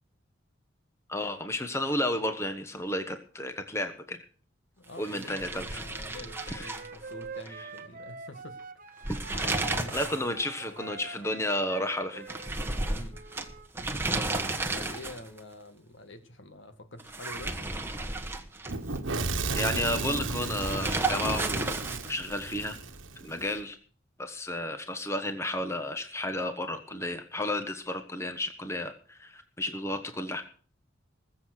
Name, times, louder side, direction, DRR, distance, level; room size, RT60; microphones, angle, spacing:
voice 1, 1.1-4.2 5.0-5.8 6.5-6.7 9.3-9.5 9.9-12.3 19.5-21.8 22.1-22.8 23.2-23.8 24.2-30.4, left 1 dB, 15° left, 7 dB, 1.2 m, -32 dB
voice 2, 4.8-8.6 9.4-10.2 10.6-10.8 12.9-13.2 14.7-17.7, left 1 dB, 65° left, 8 dB, 1.9 m, -46 dB
sound 1, 5.0-7.5 7.8-7.9 8.9-10.3 10.6-10.7 12.3-15.4 17.0-19.0 20.6-22.3, right 2 dB, 10° right, 1.3 m, -33 dB
Wind instrument woodwind instrument, 6.1-13.7, right 4 dB, 40° right, 0.9 m, -46 dB
Fire / Explosion, 18.7-23.5, right 3 dB, 70° right, 1.3 m, -33 dB
20.5 x 7.6 x 6.5 m, 0.43 s
head